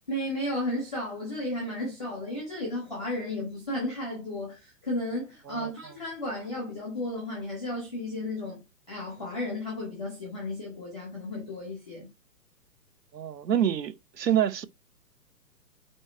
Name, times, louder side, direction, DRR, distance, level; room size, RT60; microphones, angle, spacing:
voice 1, 0.1-12.1, left 1 dB, 5° right, 0.8 m, -34 dB
voice 2, 13.1-14.7, right 10 dB, 75° right, 0.9 m, -27 dB
8.9 x 3.1 x 4.5 m
hypercardioid pair, 175°, 50 cm